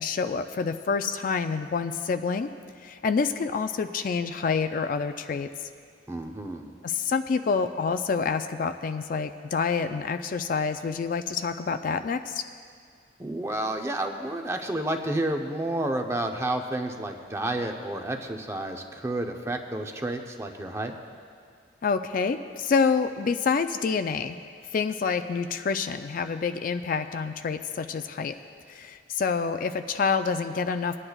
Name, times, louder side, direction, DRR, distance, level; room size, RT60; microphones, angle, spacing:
voice 1, 0.0-2.5 2.8-5.5 6.8-12.4 21.8-24.4 24.7-28.3 28.7-31.0, left 5 dB, 45° left, 9 dB, 0.3 m, -27 dB
voice 2, 6.1-6.8 13.2-20.9, right 1 dB, 15° right, 4 dB, 0.6 m, -30 dB
23.0 x 9.8 x 2.3 m, 2.1 s
head